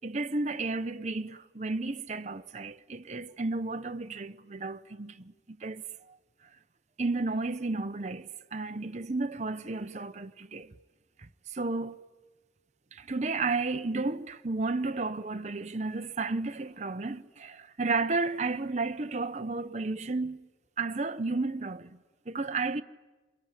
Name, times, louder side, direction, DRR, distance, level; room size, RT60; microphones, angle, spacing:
voice 1, 0.0-6.2 7.0-10.7 11.5-12.0 12.9-20.5 20.8-22.0 22.3-22.8, right 3 dB, 40° right, 0.9 m, -32 dB
28.0 x 23.0 x 9.0 m
head